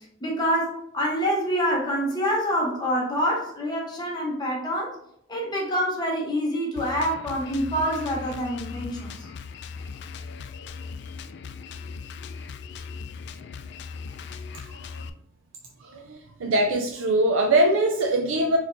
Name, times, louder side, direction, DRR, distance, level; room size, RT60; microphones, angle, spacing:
voice 1, 0.2-5.0 5.3-9.3, equal, 20° left, -2 dB, 0.8 m, -26 dB
Drum kit, 6.8-15.1, left 5 dB, 55° left, 0.3 m, -39 dB
voice 2, 14.5-15.0 15.8-18.6, right 1 dB, 85° right, 3 dB, 0.4 m, -23 dB
6.3 x 3.1 x 2.6 m, 0.75 s
head